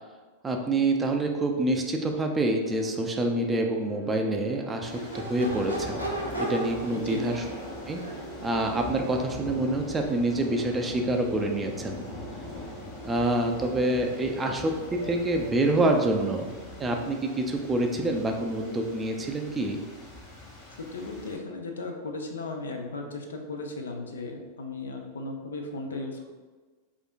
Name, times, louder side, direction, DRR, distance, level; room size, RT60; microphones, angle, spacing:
voice 1, 0.4-6.0 6.4-7.4 7.9-8.0 8.4-12.0 13.0-14.7 15.0-16.5 16.8-19.8, right 2 dB, 15° right, 2 dB, 0.4 m, -27 dB
Crowd / Race car auto racing / Accelerating revving vroom, 2.5-19.6, right 1 dB, 85° right, 0.6 m, -41 dB
sound 1, 4.8-21.4, left 2 dB, 35° left, 1.0 m, -42 dB
voice 2, 6.9-7.2 20.8-26.3, left 3 dB, 70° left, 3 dB, 0.4 m, -36 dB
4.8 x 2.5 x 2.4 m, 1.4 s
figure-of-eight pair, 90°, 0 cm